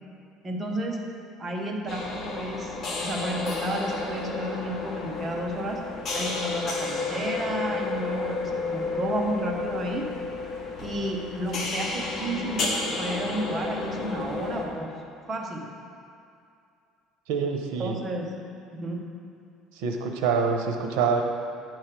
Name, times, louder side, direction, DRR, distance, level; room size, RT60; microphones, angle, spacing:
voice 1, 0.4-1.0 1.4-5.8 6.1-10.1 10.8-14.9 15.3-15.7 17.8-18.3 18.8-19.0, right 1 dB, 25° right, 0 dB, 0.9 m, -32 dB
sound 1, 1.9-14.7, left 3 dB, 40° left, 1.1 m, -31 dB
voice 2, 17.3-18.0 19.7-21.2, right 5 dB, 90° right, 3 dB, 0.7 m, -26 dB
8.9 x 3.2 x 5.9 m, 2.5 s
cardioid pair, 125°, 0 cm